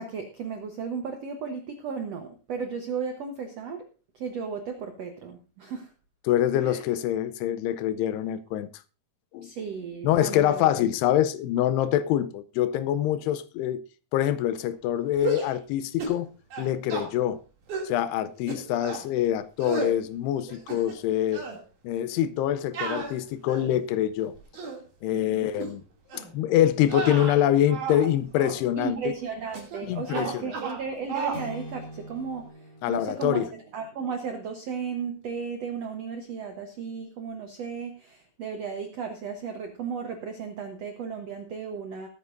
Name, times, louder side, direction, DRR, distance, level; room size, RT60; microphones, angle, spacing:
voice 1, 0.0-3.9 4.1-5.9 6.6-6.8 9.4-10.7 25.1-25.5 28.8-42.1, right 6 dB, 85° right, 1.4 m, -35 dB
voice 2, 6.3-8.7 9.3-9.5 10.0-13.8 14.1-16.3 16.6-17.4 17.8-21.5 21.8-24.3 25.0-25.8 26.1-29.0 29.8-30.5 32.8-33.5, left 11 dB, 85° left, 2.8 m, -25 dB
sound 1, 15.1-15.6 16.0-16.2 16.5-17.1 17.7-17.9 18.5-19.1 19.6-20.0 20.5-21.1 21.3-21.6 22.7-23.8 24.4-24.8 25.5-25.7 26.1-26.3 26.8-28.1 28.4-28.6 29.5-29.8 30.1-30.8 31.1-31.4, right 4 dB, 55° right, 3.9 m, -33 dB
sound 2, 31.3-35.8, equal, 40° left, 2.7 m, -45 dB
20.0 x 9.3 x 2.6 m
omnidirectional pair, 4.7 m